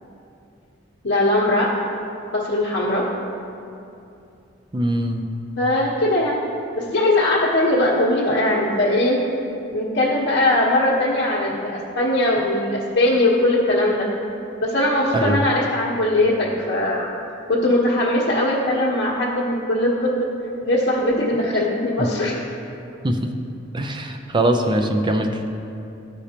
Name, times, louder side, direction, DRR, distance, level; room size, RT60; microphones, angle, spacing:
voice 1, 1.0-1.7 2.3-3.0 5.5-6.4 6.8-9.2 9.7-14.1 14.6-17.1 17.5-20.3 20.6-22.4, left 1 dB, 65° left, -8 dB, 1.2 m, -20 dB
voice 2, 4.7-5.2 15.1-15.4 23.0-23.2 23.7-25.5, right 1 dB, 25° right, 4 dB, 0.5 m, -21 dB
13.5 x 5.0 x 2.9 m, 2.7 s
head